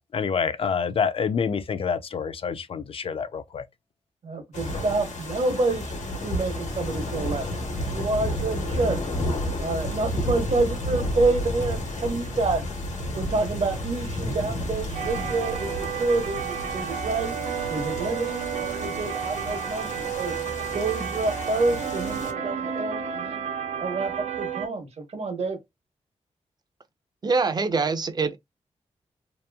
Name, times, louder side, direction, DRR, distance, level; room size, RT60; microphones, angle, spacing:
voice 1, 0.0-3.6, left 6 dB, 50° left, 0.4 m, -27 dB
voice 2, 4.2-9.0 9.6-12.7 13.1-17.4 17.7-20.3 20.7-23.4 23.8-25.6, right 3 dB, 60° right, 1.0 m, -28 dB
sound 1, 4.5-22.3, left 1 dB, 90° left, 1.1 m, -32 dB
sound 2, 14.9-24.7, right 8 dB, 85° right, 0.6 m, -31 dB
voice 3, 27.2-28.4, right 4 dB, 35° right, 0.5 m, -24 dB
2.9 x 2.5 x 2.2 m
wide cardioid pair, 95°, 12 cm